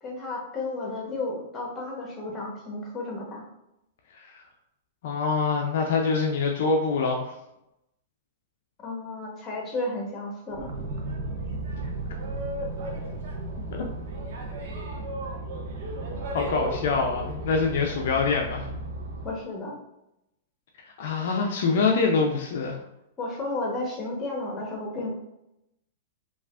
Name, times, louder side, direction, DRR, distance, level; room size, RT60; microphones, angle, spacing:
voice 1, 0.0-3.4 8.8-10.7 19.2-19.8 23.2-25.1, left 2 dB, 25° left, 0 dB, 1.0 m, -33 dB
voice 2, 5.0-7.3 13.7-13.8 16.3-18.7 20.8-22.8, left 4 dB, 65° left, 1 dB, 0.4 m, -25 dB
Boat Water vehicle, 10.5-19.3, right 2 dB, 65° right, 0.6 m, -34 dB
3.2 x 2.4 x 2.4 m, 0.85 s
hypercardioid pair, 120°, 0 cm